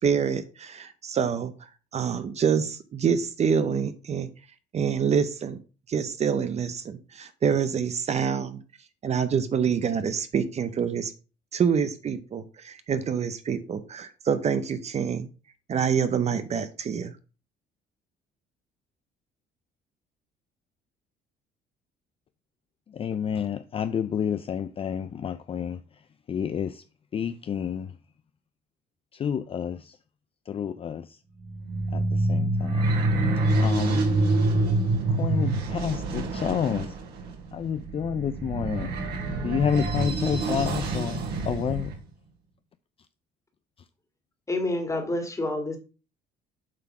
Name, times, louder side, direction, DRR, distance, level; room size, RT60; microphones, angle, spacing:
voice 1, 0.0-1.5 1.9-4.3 4.7-5.6 5.9-8.6 9.0-11.1 11.5-15.3 15.7-17.1, right 7 dB, 40° right, 0.8 m, -26 dB
voice 2, 22.9-25.8 26.3-26.8 27.1-27.9 29.2-29.9 30.5-31.1 31.9-32.9 33.6-34.1 35.1-36.9 37.5-38.9 39.4-41.9, left 8 dB, 35° left, 0.4 m, -29 dB
sound 1, 31.4-41.9, right 2 dB, 70° right, 3.2 m, -26 dB
voice 3, 44.5-45.8, left 2 dB, 20° left, 2.0 m, -28 dB
7.6 x 3.7 x 5.9 m
cardioid pair, 110°, 17 cm